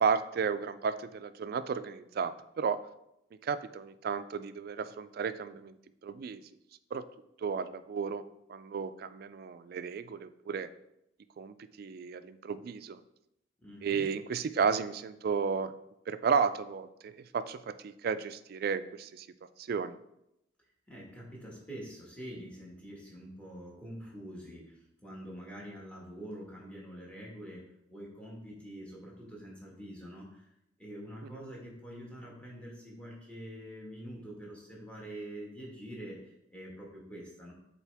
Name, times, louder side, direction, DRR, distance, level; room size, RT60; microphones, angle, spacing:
voice 1, 0.0-2.8 3.4-5.8 6.0-6.4 6.9-7.0 7.4-8.2 8.5-10.7 11.4-13.0 13.8-15.7 16.1-19.3 19.6-20.0, right 6 dB, 55° right, 13 dB, 0.3 m, -33 dB
voice 2, 13.6-14.0 20.9-30.5 30.8-37.5, equal, 5° left, -4 dB, 1.6 m, -45 dB
7.2 x 4.2 x 3.4 m, 0.82 s
head